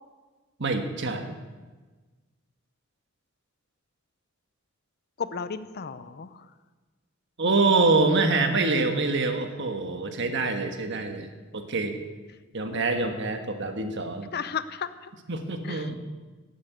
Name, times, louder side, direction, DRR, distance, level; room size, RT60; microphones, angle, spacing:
voice 1, 0.6-1.3 7.4-12.0 12.5-14.3 15.3-16.0, right 3 dB, 60° right, 6 dB, 1.4 m, -25 dB
voice 2, 5.2-6.5 12.7-12.8 14.3-15.1 15.6-15.9, left 6 dB, 50° left, 14 dB, 0.6 m, -34 dB
12.5 x 8.4 x 8.1 m, 1.3 s
head